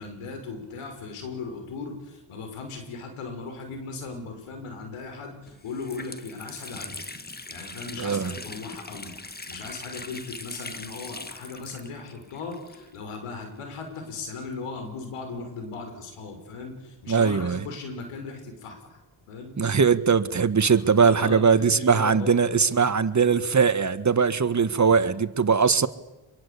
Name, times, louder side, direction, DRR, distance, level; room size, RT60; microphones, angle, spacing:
voice 1, 0.0-7.0 7.5-9.1 9.5-19.0 19.3-19.6 20.7-22.5 24.8-25.1, left 4 dB, 90° left, 6.2 m, -38 dB
Water tap faucet, 5.0-5.1 5.5-13.2 13.4-13.5 14.4-15.9, left 3 dB, 20° left, 1.8 m, -41 dB
voice 2, 8.0-8.3 17.1-17.6 19.6-25.9, right 6 dB, 35° right, 1.6 m, -21 dB
25.5 x 22.5 x 8.6 m
cardioid pair, 70°, 50 cm